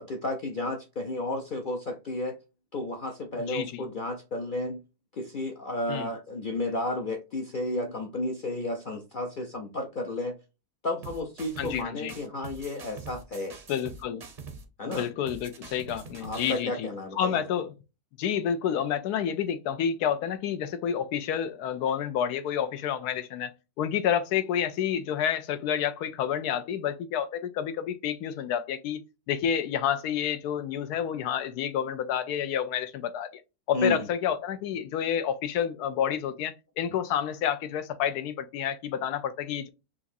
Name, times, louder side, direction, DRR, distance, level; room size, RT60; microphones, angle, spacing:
voice 1, 0.0-2.4 2.7-4.8 5.1-10.4 10.8-13.6 14.8-15.1 16.2-17.5 33.7-34.0, left 1 dB, 65° left, 0.5 m, -32 dB
voice 2, 3.3-3.8 5.9-6.1 11.6-12.1 13.7-14.2 14.8-16.9 17.2-17.7 18.2-23.5 23.8-29.0 29.3-33.3 33.7-39.7, left 9 dB, 90° left, 1.1 m, -29 dB
sound 1, 11.0-11.8 12.1-14.6 14.9-16.6, right 4 dB, 50° right, 0.5 m, -44 dB
6.0 x 2.5 x 2.6 m
omnidirectional pair, 1.6 m